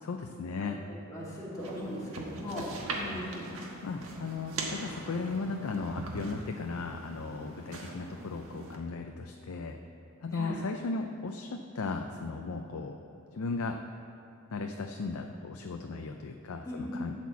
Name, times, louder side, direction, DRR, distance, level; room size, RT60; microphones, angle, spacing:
voice 1, 0.0-0.8 3.0-3.2 3.8-9.8 10.2-13.0 13.3-13.8 14.5-17.1, left 4 dB, 75° left, 4 dB, 0.5 m, -36 dB
voice 2, 0.6-3.7 10.3-10.5 16.6-17.0, left 1 dB, 15° left, -7 dB, 2.3 m, -39 dB
sound 1, 1.6-8.8, right 2 dB, 75° right, 1.3 m, -41 dB
12.5 x 4.3 x 7.2 m, 2.8 s
head